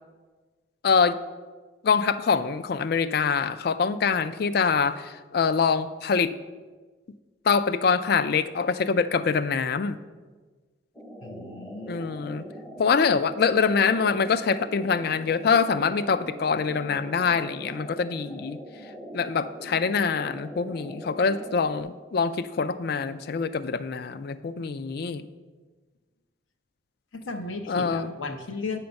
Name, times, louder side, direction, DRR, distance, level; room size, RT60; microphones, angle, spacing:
voice 1, 0.8-1.2 1.8-6.3 7.5-10.0 11.9-12.4 12.8-18.6 19.1-25.2 27.7-28.1, left 5 dB, 50° left, 14 dB, 0.4 m, -24 dB
sound 1, 10.9-21.8, equal, 10° left, 0.6 m, -42 dB
voice 2, 11.2-12.0 27.1-28.8, left 3 dB, 80° left, 7 dB, 0.8 m, -35 dB
8.7 x 5.8 x 5.2 m, 1.4 s
head